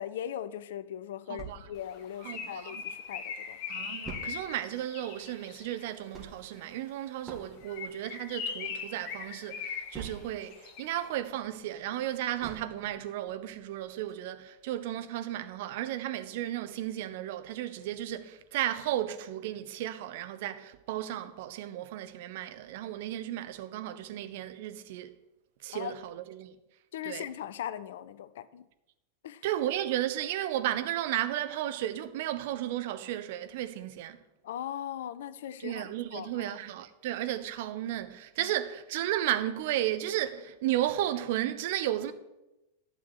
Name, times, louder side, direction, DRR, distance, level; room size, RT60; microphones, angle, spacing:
voice 1, 0.0-3.6 25.7-25.9 26.9-28.6 29.2-29.4 34.4-35.8 36.1-36.6, left 10 dB, 60° left, 0.6 m, -39 dB
voice 2, 1.3-1.6 2.2-2.8 3.7-25.1 25.6-26.5 27.0-27.2 29.4-34.2 35.6-42.1, right 12 dB, 50° right, 1.0 m, -34 dB
sound 1, 1.4-2.9 3.3-3.4 3.6-10.6 11.0-13.1 13.6-13.7 14.1-14.2, right 4 dB, 15° right, 2.8 m, -47 dB
Bird, 1.9-6.0 7.6-11.1, left 6 dB, 40° left, 1.6 m, -40 dB
12.0 x 6.4 x 9.1 m
figure-of-eight pair, 90°, 0 cm